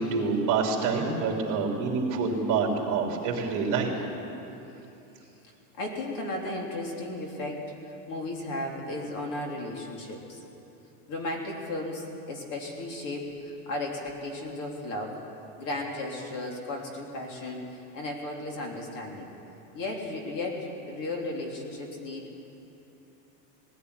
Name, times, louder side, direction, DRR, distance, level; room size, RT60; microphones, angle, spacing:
voice 1, 0.0-3.9, right 4 dB, 40° right, 0 dB, 3.5 m, -27 dB
voice 2, 5.4-10.4 11.1-15.2 15.6-19.3 19.7-22.3, left 2 dB, 40° left, 0 dB, 3.5 m, -35 dB
19.5 x 16.0 x 9.8 m, 2.9 s
supercardioid pair, 150°, 47 cm